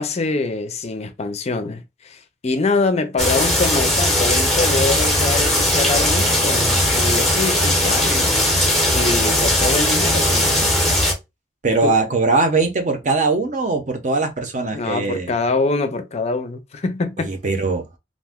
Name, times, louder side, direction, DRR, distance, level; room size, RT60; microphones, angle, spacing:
voice 1, 0.0-8.4 8.9-10.7 11.8-12.0 14.7-17.3, left 3 dB, 35° left, 0.5 m, -24 dB
sound 1, 3.2-11.1, left 1 dB, ahead, 0.7 m, -18 dB
voice 2, 11.6-15.4 17.2-17.8, right 3 dB, 45° right, 0.7 m, -20 dB
2.5 x 2.1 x 3.5 m
head